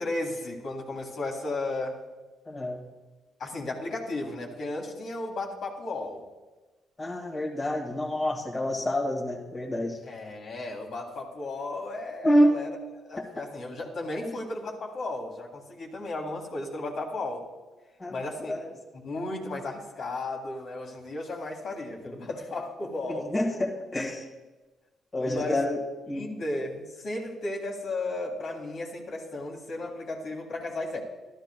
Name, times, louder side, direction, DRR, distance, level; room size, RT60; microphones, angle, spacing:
voice 1, 0.0-2.0 3.4-6.2 10.0-12.7 13.0-17.5 18.1-18.5 18.9-23.4 25.2-25.6 26.1-31.0, left 2 dB, 60° left, 0 dB, 2.0 m, -34 dB
voice 2, 2.5-2.8 7.0-10.0 12.2-12.5 14.2-14.3 18.0-18.1 18.5-18.7 23.1-24.3 25.1-25.8 26.1-26.2, equal, 25° left, -1 dB, 1.7 m, -27 dB
12.5 x 12.5 x 2.3 m, 1.2 s
cardioid pair, 90°, 0 cm